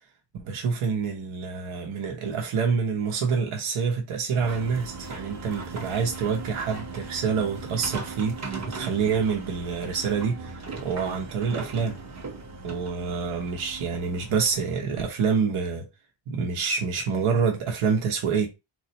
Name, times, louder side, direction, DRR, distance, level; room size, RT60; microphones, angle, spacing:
voice 1, 0.3-12.0 12.6-15.9 16.3-18.5, right 5 dB, 75° right, 1.0 m, -27 dB
sound 1, 4.4-14.8, right 3 dB, 35° right, 0.8 m, -38 dB
3.9 x 3.2 x 2.8 m
wide cardioid pair, 140°, 50 cm